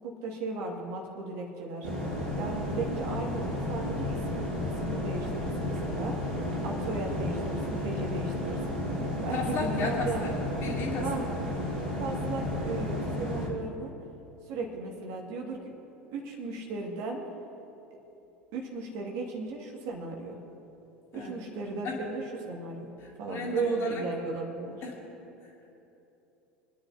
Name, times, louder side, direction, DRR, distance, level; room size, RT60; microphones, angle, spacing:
voice 1, 0.0-1.9 2.3-4.5 4.8-6.3 6.6-8.8 9.2-10.2 11.0-11.3 12.0-13.9 14.5-15.6 16.1-17.2 18.5-20.4 21.1-22.9 23.2-24.8, right 3 dB, 55° right, 0 dB, 2.2 m, -36 dB
sound 1, 1.8-13.5, left 1 dB, 75° right, 2.5 m, -32 dB
voice 2, 9.3-10.3 10.6-11.1 21.1-21.4 21.8-21.9 23.0-23.9 24.8-24.9, left 3 dB, 45° left, -2 dB, 2.9 m, -34 dB
26.0 x 10.0 x 2.9 m, 2.9 s
figure-of-eight pair, 70°, 6 cm